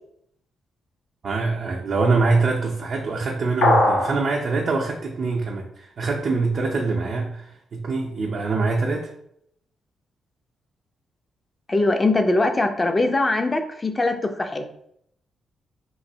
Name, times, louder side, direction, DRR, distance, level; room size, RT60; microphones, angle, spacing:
voice 1, 1.2-7.4 7.7-9.1, right 3 dB, 60° right, -1 dB, 0.5 m, -24 dB
sound 1, 3.6-4.2, left 1 dB, 85° left, 0.7 m, -18 dB
voice 2, 11.7-14.6, left 2 dB, 30° left, 6 dB, 0.5 m, -21 dB
3.1 x 2.5 x 2.7 m, 0.72 s
supercardioid pair, 50°, 0 cm